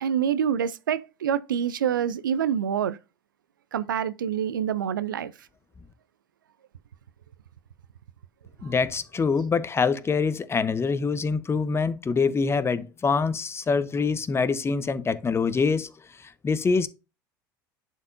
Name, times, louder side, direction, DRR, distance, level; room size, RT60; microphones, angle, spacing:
voice 1, 0.0-3.0 3.7-5.3, right 8 dB, 85° right, 0.5 m, -26 dB
voice 2, 8.6-15.9 16.2-16.9, left 5 dB, 25° left, 0.9 m, -25 dB
11.0 x 4.6 x 2.6 m
hypercardioid pair, 75°, 11 cm